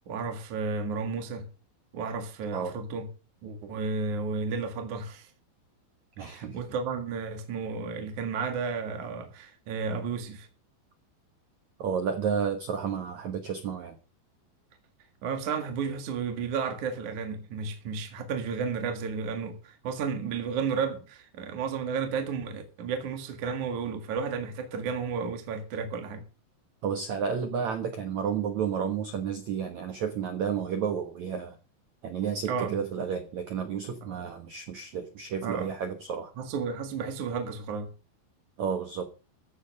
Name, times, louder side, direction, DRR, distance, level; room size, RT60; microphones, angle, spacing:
voice 1, 0.1-1.5 1.9-3.1 3.4-5.3 6.2-10.5 15.2-26.2 32.5-32.7 34.2-34.3 35.4-35.7 36.4-37.9, right 5 dB, 50° right, 2.7 m, -32 dB
voice 2, 6.2-6.6 11.8-14.0 26.8-31.6 32.0-36.3 38.6-39.1, right 7 dB, 75° right, 1.6 m, -31 dB
15.0 x 8.0 x 6.5 m
omnidirectional pair, 5.4 m